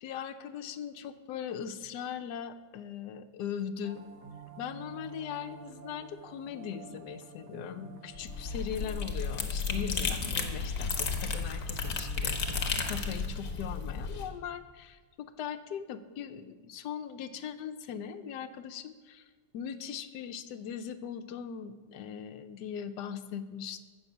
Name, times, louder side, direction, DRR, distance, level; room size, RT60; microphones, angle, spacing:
voice 1, 0.0-4.0 4.6-19.2 19.5-23.9, left 8 dB, 80° left, 9 dB, 1.3 m, -40 dB
sound 1, 3.8-14.3, right 5 dB, 70° right, 2.0 m, -49 dB
sound 2, 8.1-14.3, left 5 dB, 60° left, 1.6 m, -33 dB
14.5 x 6.2 x 7.2 m, 1.4 s
omnidirectional pair, 1.8 m